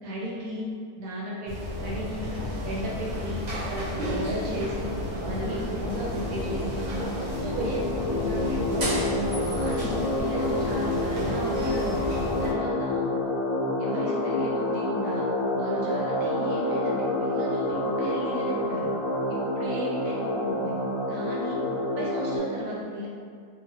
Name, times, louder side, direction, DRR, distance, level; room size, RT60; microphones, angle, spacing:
voice 1, 0.0-2.3 2.6-4.9 5.2-6.8 7.1-7.2 7.4-9.0 9.4-12.0 12.4-13.1 13.8-15.2 15.6-18.9 19.3-20.7 21.1-23.1, equal, 75° right, -5 dB, 1.1 m, -35 dB
sound 1, 1.5-12.5, left 1 dB, 50° right, 0.8 m, -33 dB
sound 2, 3.9-22.4, left 1 dB, 35° left, 0.7 m, -29 dB
2.9 x 2.1 x 2.7 m, 2.1 s
omnidirectional pair, 1.6 m